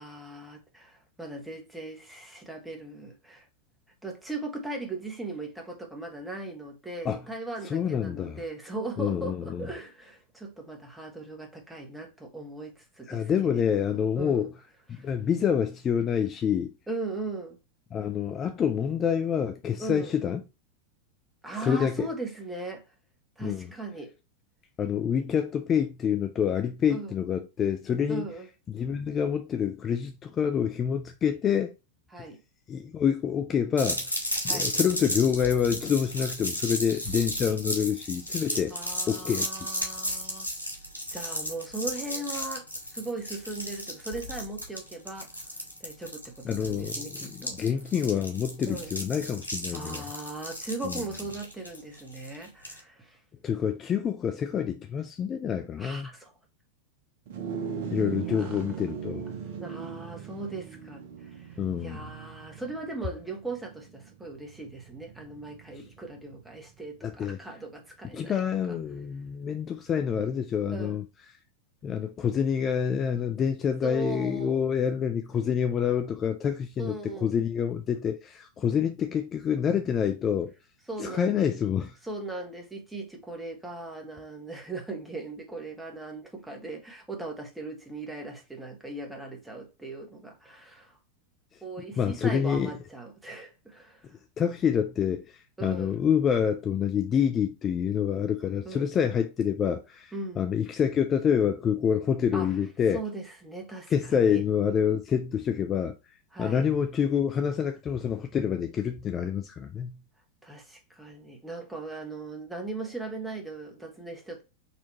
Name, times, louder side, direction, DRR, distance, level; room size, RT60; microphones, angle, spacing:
voice 1, 0.0-3.5 4.0-14.5 14.9-15.1 16.9-17.6 19.8-20.1 21.4-22.9 23.4-24.1 26.9-27.1 28.1-28.5 32.1-32.4 34.4-34.7 38.7-40.5 41.1-45.4 45.8-47.6 48.7-48.9 49.7-53.2 55.8-56.3 58.2-58.6 59.6-68.4 68.7-68.8 70.7-71.0 73.8-74.6 76.8-77.3 80.9-81.5 82.0-91.0 91.6-94.1 95.6-96.0 98.6-98.9 100.1-100.4 102.3-102.5 102.9-104.4 106.3-106.7 110.4-114.4, right 2 dB, 5° right, 1.3 m, -38 dB
voice 2, 7.6-8.4 9.0-9.6 13.1-14.5 14.9-16.7 17.9-20.4 21.6-22.1 23.4-23.7 24.8-28.3 28.7-31.7 32.7-34.2 34.4-38.7 39.1-39.5 46.5-50.1 50.8-51.0 53.4-56.1 57.9-59.2 61.6-62.0 67.0-67.4 68.1-71.0 71.8-80.5 81.0-82.0 92.0-92.7 94.4-103.0 103.9-106.0 106.4-110.0, left 8 dB, 25° left, 0.4 m, -27 dB
sound 1, 33.8-52.8, equal, 85° right, 1.8 m, -34 dB
sound 2, 57.3-66.8, right 7 dB, 50° right, 0.8 m, -39 dB
4.2 x 2.9 x 4.1 m
figure-of-eight pair, 90°, 0 cm